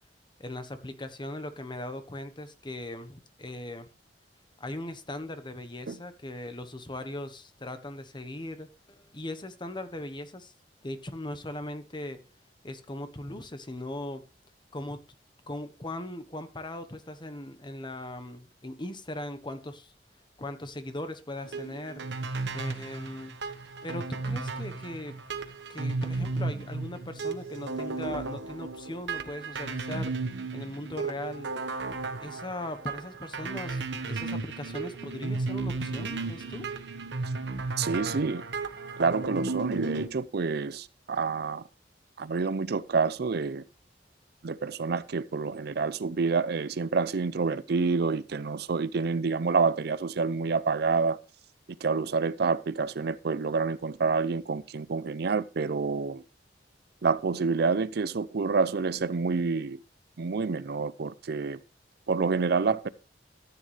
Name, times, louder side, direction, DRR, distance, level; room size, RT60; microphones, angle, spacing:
voice 1, 0.4-3.9 4.6-10.5 10.8-12.2 12.6-14.2 14.7-15.0 15.5-19.9 20.4-22.0 22.5-23.4 23.8-25.2 25.7-30.2 30.5-31.5 32.2-36.7, left 1 dB, 25° left, 1.1 m, -39 dB
sound 1, 21.4-40.1, right 3 dB, 80° right, 1.2 m, -34 dB
voice 2, 37.8-38.4 39.0-41.6 42.2-43.6 44.4-51.2 51.8-56.2 57.0-59.8 60.2-61.6 62.1-62.9, right 4 dB, 65° right, 0.5 m, -28 dB
13.5 x 8.9 x 3.3 m
head